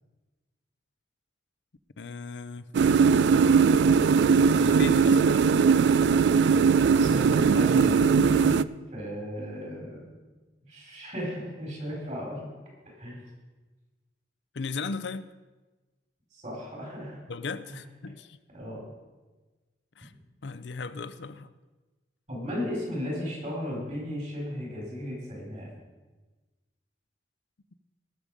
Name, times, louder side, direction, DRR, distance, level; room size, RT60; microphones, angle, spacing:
voice 1, 2.0-2.7 4.6-5.4 14.5-15.3 17.3-18.4 20.0-20.1 20.4-21.5, left 4 dB, 85° left, 13 dB, 0.6 m, -36 dB
sound 1, 2.7-8.6, right 5 dB, 80° right, 0.3 m, -20 dB
voice 2, 6.9-8.6 8.9-10.1 10.7-12.5 12.9-13.2 16.3-17.2 17.7-17.8 18.5-18.8 22.3-25.7, equal, 40° right, -2 dB, 4.5 m, -35 dB
18.5 x 6.8 x 5.0 m, 1.2 s
head